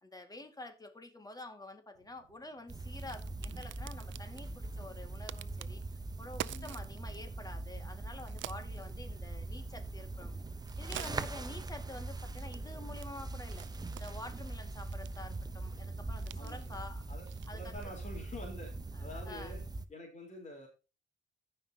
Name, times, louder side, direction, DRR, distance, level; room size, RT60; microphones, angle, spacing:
voice 1, 0.0-5.8 6.2-10.3 10.8-13.7 14.0-17.0 17.5-17.7 18.9-19.5, left 2 dB, 20° left, 2.0 m, -48 dB
Crack, 2.0-18.0, right 14 dB, 70° right, 0.5 m, -51 dB
sound 1, 2.7-19.8, right 2 dB, 20° right, 0.8 m, -42 dB
voice 2, 6.5-6.8 14.4-14.5 16.3-16.8 17.1-17.3 17.5-18.7 19.0-19.6 19.9-20.7, left 1 dB, 35° left, 4.0 m, -47 dB
15.0 x 5.6 x 2.9 m
cardioid pair, 90°, 20 cm